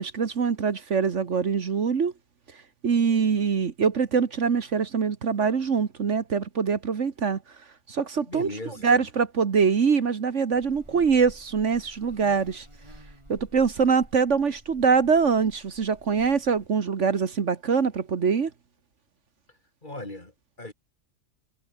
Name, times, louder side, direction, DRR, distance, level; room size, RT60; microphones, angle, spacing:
voice 1, 0.0-2.1 2.8-7.4 7.9-8.5 8.8-12.7 13.3-18.5, right 5 dB, 60° right, 1.7 m, -24 dB
voice 2, 8.3-9.0 19.8-20.7, left 2 dB, 35° left, 3.8 m, -38 dB
Buzz, 10.5-16.7, right 1 dB, 20° right, 7.1 m, -50 dB
omnidirectional pair, 1.4 m